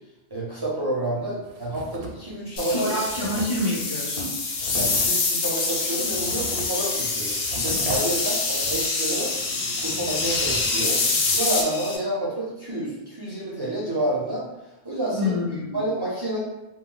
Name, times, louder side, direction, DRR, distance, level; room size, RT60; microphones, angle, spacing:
voice 1, 0.3-2.9 4.7-9.3 9.8-11.0 11.3-14.4 14.8-15.3 15.7-16.4, right 1 dB, 30° right, -7 dB, 0.5 m, -29 dB
sound 1, 1.4-2.3 2.6-2.7 3.0-9.0, right 2 dB, 80° right, 0.8 m, -38 dB
sound 2, 2.6-12.0, left 3 dB, 80° left, 0.8 m, -26 dB
voice 2, 2.7-4.3 15.1-15.8, left 1 dB, 45° left, -7 dB, 0.4 m, -27 dB
2.2 x 2.1 x 3.7 m, 1.0 s
omnidirectional pair, 1.1 m